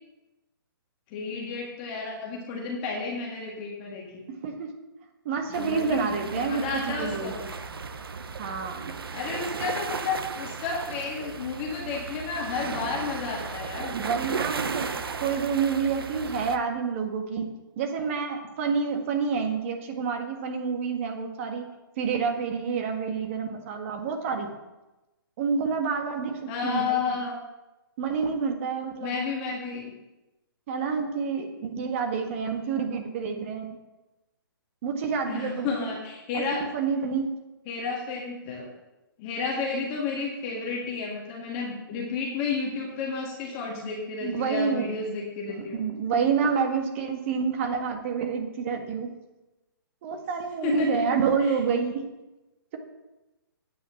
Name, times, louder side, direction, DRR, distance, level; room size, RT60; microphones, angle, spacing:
voice 1, 1.1-4.2 5.6-7.4 9.1-14.0 26.5-27.4 29.0-29.9 35.3-36.6 37.7-38.7 39.2-45.8 50.6-51.0 51.4-51.5, left 4 dB, 25° left, -2 dB, 1.7 m, -31 dB
voice 2, 5.3-7.3 8.4-8.9 13.9-14.9 15.2-21.7 22.0-24.5 25.4-26.3 26.6-27.2 28.0-29.1 30.7-33.8 34.8-36.0 36.3-37.3 44.2-44.9 45.5-49.1 50.0-52.0, right 5 dB, 35° right, 4 dB, 1.6 m, -28 dB
sound 1, 5.5-16.6, right 5 dB, 85° right, 0.9 m, -35 dB
9.1 x 6.1 x 7.3 m, 1.0 s
hypercardioid pair, 155°, 12 cm